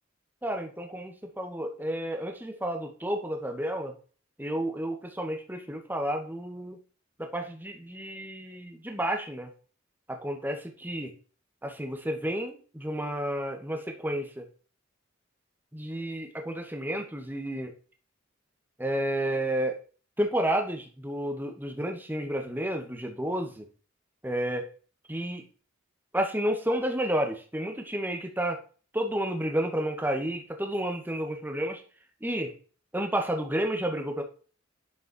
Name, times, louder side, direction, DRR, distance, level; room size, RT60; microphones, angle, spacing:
voice 1, 0.4-4.0 4.4-6.8 7.2-9.5 10.1-11.1 11.6-14.5 15.7-17.7 18.8-19.8 20.2-23.7 24.2-24.7 25.1-25.4 26.1-28.6 28.9-31.8 32.2-32.5 32.9-34.2, right 1 dB, 10° right, 4 dB, 1.9 m, -31 dB
11.0 x 8.1 x 4.5 m, 0.39 s
head